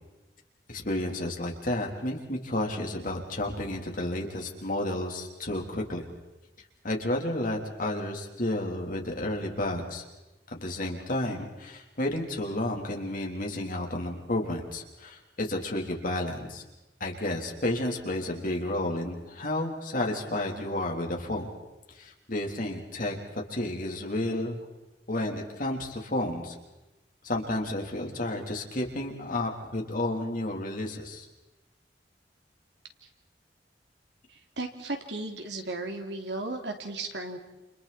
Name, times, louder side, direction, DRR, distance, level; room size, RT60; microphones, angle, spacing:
voice 1, 0.7-6.1 6.8-10.0 10.5-16.6 17.0-21.5 22.0-23.2 23.5-24.6 25.1-26.6 27.2-31.3, left 1 dB, 50° left, 1 dB, 3.6 m, -31 dB
voice 2, 34.3-37.4, right 2 dB, 75° right, 4 dB, 2.9 m, -35 dB
29.5 x 28.5 x 4.4 m, 1.0 s
head